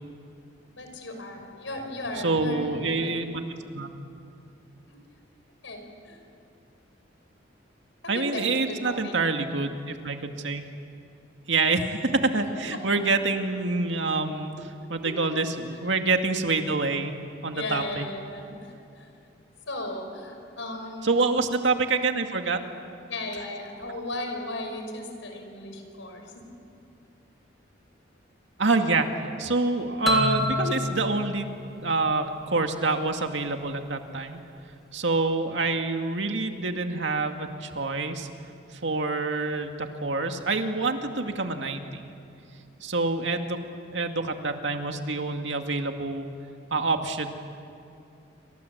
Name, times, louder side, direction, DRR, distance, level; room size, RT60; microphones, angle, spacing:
voice 1, 0.7-3.1 4.9-5.0 5.6-6.2 8.0-9.1 12.7-12.8 15.0-15.2 17.5-19.1 19.7-21.3 23.1-26.4, left 2 dB, 80° left, 4 dB, 5.7 m, -36 dB
voice 2, 2.2-3.9 8.1-10.6 11.5-14.6 14.9-17.1 17.4-18.0 21.0-22.6 28.6-31.5 31.8-34.4 34.9-38.3 38.8-42.0 42.8-43.6 43.9-46.3 46.7-47.3, right 3 dB, 70° right, 5 dB, 2.2 m, -26 dB
sound 1, 30.1-32.8, left 1 dB, ahead, 3.2 m, -30 dB
29.0 x 25.5 x 8.1 m, 2.6 s
head